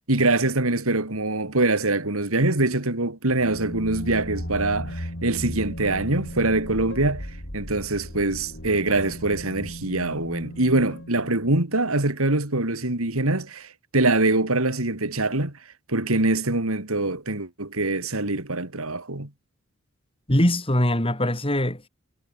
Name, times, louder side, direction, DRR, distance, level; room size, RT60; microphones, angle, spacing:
voice 1, 0.1-7.3 7.5-15.6 15.9-19.3, right 2 dB, 75° right, 3.2 m, -24 dB
sound 1, 3.3-11.9, equal, 55° left, 7.9 m, -36 dB
voice 2, 20.3-21.9, left 1 dB, 25° left, 5.1 m, -22 dB
head